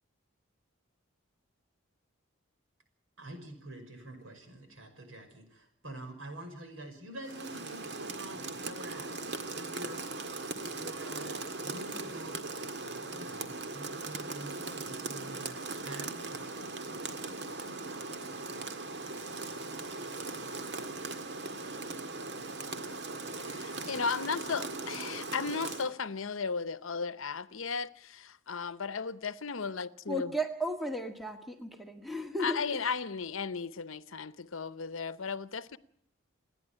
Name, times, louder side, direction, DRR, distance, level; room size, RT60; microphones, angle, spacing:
voice 1, 3.2-10.1 10.7-12.4 13.1-16.5, right 1 dB, 75° right, 5.9 m, -47 dB
Rain, 7.2-25.9, right 3 dB, 55° right, 1.9 m, -39 dB
voice 2, 23.4-30.3 32.4-35.8, left 5 dB, 75° left, 0.8 m, -35 dB
voice 3, 30.1-32.6, equal, ahead, 1.7 m, -34 dB
29.5 x 10.5 x 9.8 m
head